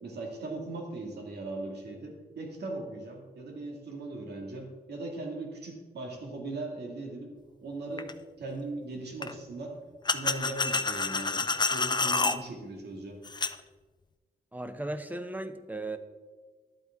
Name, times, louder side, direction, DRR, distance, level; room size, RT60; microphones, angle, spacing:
voice 1, 0.0-7.3 7.6-8.1 8.4-9.8 10.1-13.2, right 2 dB, 90° right, 1 dB, 2.0 m, -39 dB
sound 1, 8.0-8.1 9.2-9.3 10.1-12.4 13.3-13.6, left 4 dB, 25° left, 0.5 m, -28 dB
voice 2, 14.5-16.0, right 2 dB, 10° right, 9 dB, 0.8 m, -36 dB
11.5 x 8.3 x 3.6 m, 1.3 s
cardioid pair, 85°, 17 cm